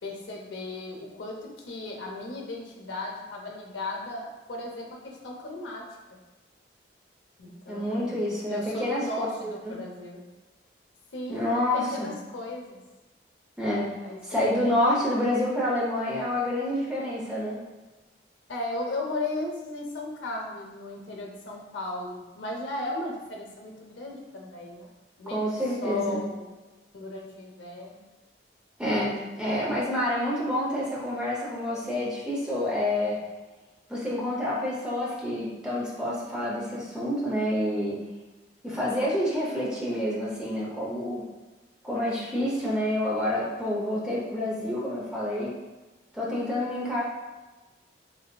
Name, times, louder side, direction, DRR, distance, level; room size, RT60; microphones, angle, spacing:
voice 1, 0.0-6.2 7.4-10.2 11.1-12.8 14.0-15.0 18.5-24.9 25.2-25.5 25.8-26.5 26.9-28.0, left 2 dB, 85° left, -1 dB, 0.6 m, -36 dB
voice 2, 7.7-9.8 11.3-12.1 13.6-13.9 14.2-17.6 25.3-26.2 28.8-33.2 33.9-38.0 38.6-41.2 41.8-45.5 46.1-47.0, left 1 dB, 5° right, -5 dB, 0.5 m, -28 dB
3.3 x 2.6 x 2.2 m, 1.2 s
head